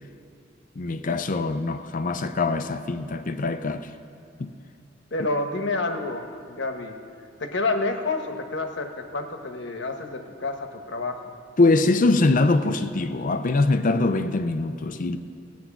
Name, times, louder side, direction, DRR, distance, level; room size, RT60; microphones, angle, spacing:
voice 1, 0.8-3.9 4.4-4.5 11.6-15.2, left 3 dB, 45° left, 0.5 m, -23 dB
voice 2, 5.1-6.9 7.4-11.3, left 3 dB, 65° left, 1.1 m, -29 dB
16.0 x 9.3 x 5.9 m
head